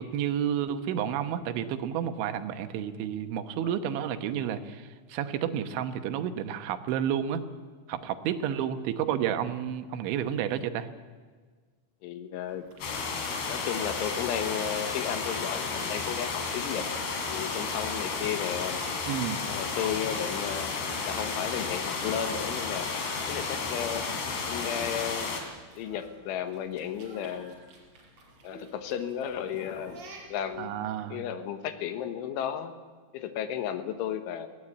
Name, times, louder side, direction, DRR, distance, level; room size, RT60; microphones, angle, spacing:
voice 1, 0.0-7.4 7.9-10.9 19.1-19.4 30.6-31.2, right 9 dB, 80° right, 9 dB, 3.5 m, -31 dB
voice 2, 12.0-12.7 13.5-16.9 17.3-18.8 19.5-20.8 21.1-22.9 23.3-24.1 24.5-25.3 25.8-27.6 28.4-30.0 30.3-30.8 31.1-32.7 33.1-34.5, left 9 dB, 85° left, 9 dB, 3.8 m, -33 dB
sound 1, 12.4-30.6, right 1 dB, 35° right, 5.1 m, -51 dB
sound 2, 12.8-25.4, left 4 dB, 65° left, 4.8 m, -32 dB
20.0 x 17.5 x 8.7 m, 1.5 s
omnidirectional pair, 5.5 m